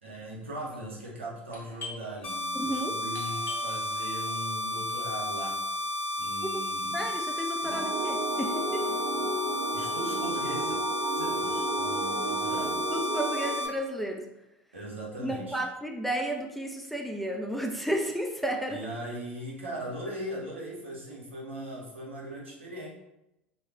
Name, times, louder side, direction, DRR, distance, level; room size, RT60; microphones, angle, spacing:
voice 1, 0.0-5.6 6.2-7.0 7.6-7.8 9.7-10.8 11.1-12.9 14.7-15.6 18.7-22.9, right 1 dB, 85° right, -4 dB, 0.7 m, -39 dB
Doorbell, 1.5-6.9, left 2 dB, 35° left, 0.6 m, -47 dB
sound 1, 2.2-13.7, left 1 dB, 80° left, 0.8 m, -32 dB
voice 2, 2.5-3.0 6.9-8.9 12.9-14.2 15.2-18.8, equal, ahead, 2 dB, 0.3 m, -32 dB
sound 2, 7.7-13.5, right 2 dB, 50° right, 0.6 m, -33 dB
2.2 x 2.0 x 3.4 m, 0.89 s
figure-of-eight pair, 70°, 6 cm